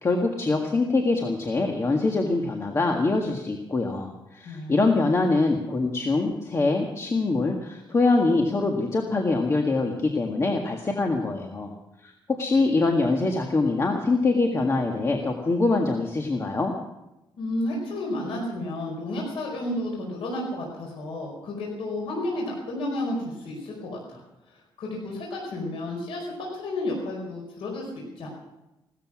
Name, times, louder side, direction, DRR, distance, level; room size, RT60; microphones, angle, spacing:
voice 1, 0.0-11.7 12.0-16.7, left 3 dB, 30° left, 2 dB, 1.7 m, -24 dB
voice 2, 4.4-4.9 17.4-24.2 24.8-28.3, left 1 dB, 85° left, -1 dB, 5.0 m, -32 dB
17.0 x 13.5 x 6.2 m, 0.94 s
cardioid pair, 120°, 9 cm